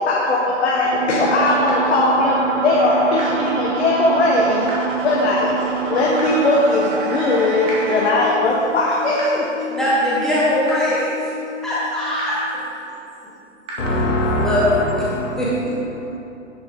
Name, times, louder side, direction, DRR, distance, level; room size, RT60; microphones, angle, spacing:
voice 1, 0.0-4.7 5.0-9.5, left 2 dB, 60° left, -4 dB, 1.3 m, -19 dB
sound 1, 0.8-8.1, right 5 dB, 45° right, 0.9 m, -25 dB
sound 2, 1.7-1.8 3.2-3.3 4.7-4.8 6.2-6.3 7.7-7.8 9.2-9.3 10.7-10.8 12.2-12.3 13.7-13.8, right 3 dB, 15° right, 1.3 m, -31 dB
sound 3, 5.4-13.1 13.8-13.9 14.9-15.0, left 3 dB, 65° right, 1.6 m, -33 dB
voice 2, 9.7-11.2 11.6-12.4 14.2-14.6 15.4-15.5, equal, ahead, -9 dB, 0.5 m, -21 dB
voice 3, 13.8-15.6 15.9-16.2, left 1 dB, 75° left, -3 dB, 1.9 m, -23 dB
9.9 x 5.3 x 3.5 m, 2.6 s
figure-of-eight pair, 130°, 38 cm